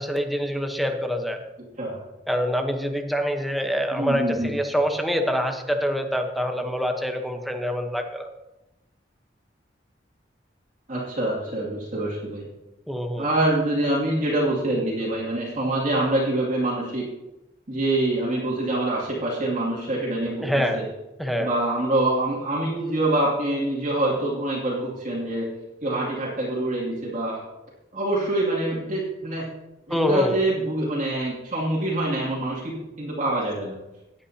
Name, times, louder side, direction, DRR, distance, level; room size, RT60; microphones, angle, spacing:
voice 1, 0.0-1.4 2.3-8.3 12.9-13.3 20.4-20.8 21.2-21.5 29.9-30.4, equal, ahead, 4 dB, 0.9 m, -25 dB
voice 2, 3.9-4.5 10.9-12.5 13.2-17.0 17.7-20.5 20.7-20.8 21.4-25.5 25.8-27.4 27.9-29.4 29.9-33.7, right 1 dB, 45° right, -5 dB, 2.4 m, -25 dB
18.0 x 8.6 x 2.8 m, 0.96 s
head